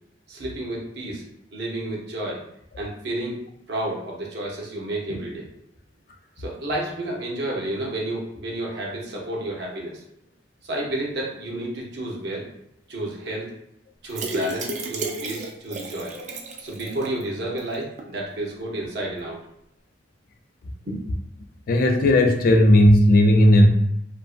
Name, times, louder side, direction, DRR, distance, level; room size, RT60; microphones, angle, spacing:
voice 1, 0.3-1.2 1.5-2.4 2.8-3.4 3.7-5.5 6.4-10.0 10.6-12.5 12.9-13.5 14.0-19.4 20.8-21.0, right 1 dB, 60° right, -2 dB, 0.8 m, -31 dB
sound 1, 14.1-17.2 17.6-17.7 18.0-18.1, right 3 dB, 40° right, 0.4 m, -32 dB
voice 2, 21.7-23.7, left 1 dB, 50° left, 4 dB, 0.3 m, -15 dB
2.9 x 2.5 x 2.4 m, 0.76 s
head